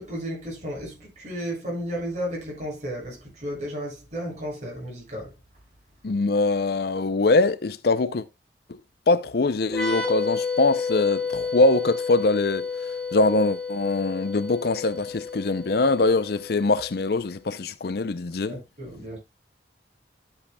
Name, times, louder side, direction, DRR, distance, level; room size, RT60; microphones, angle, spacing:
voice 1, 0.0-5.3 18.4-19.2, equal, 40° right, 7.1 m, -33 dB
voice 2, 6.0-8.2 9.1-12.7 13.1-18.6, left 3 dB, 55° left, 0.5 m, -23 dB
sound 1, 9.7-17.2, left 5 dB, 5° left, 2.7 m, -31 dB
12.5 x 8.5 x 2.3 m
head